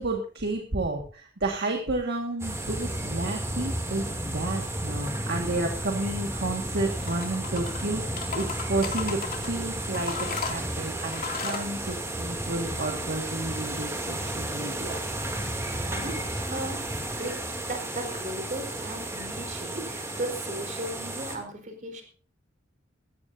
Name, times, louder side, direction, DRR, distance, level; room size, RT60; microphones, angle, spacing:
voice 1, 0.0-15.4 15.7-15.9, right 2 dB, 55° right, 1 dB, 1.9 m, -31 dB
sound 1, 2.4-21.4, right 1 dB, 15° right, 2.7 m, -33 dB
sound 2, 7.0-7.8 8.2-9.5 9.9-11.7, left 6 dB, 50° left, 2.6 m, -35 dB
voice 2, 15.5-16.8 17.2-22.0, right 1 dB, 40° right, 4 dB, 4.3 m, -36 dB
18.5 x 16.0 x 2.7 m, 0.40 s
head